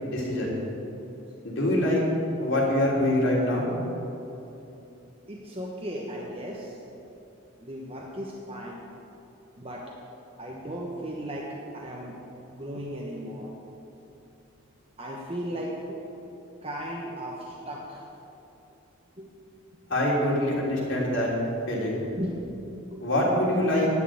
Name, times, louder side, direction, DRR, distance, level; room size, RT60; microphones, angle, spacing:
voice 1, 0.0-0.6 1.4-2.0 2.4-3.7 19.9-21.3 21.7-22.0 23.0-23.9, left 1 dB, 60° left, -4 dB, 3.2 m, -24 dB
voice 2, 5.3-6.7 7.6-8.8 9.6-9.8 10.4-11.5 11.7-12.2 12.5-13.5 15.0-16.0 16.6-18.1 19.2-19.3 22.2-22.5 22.9-23.0, equal, 25° right, -3 dB, 1.1 m, -36 dB
11.0 x 6.7 x 8.8 m, 3.0 s
head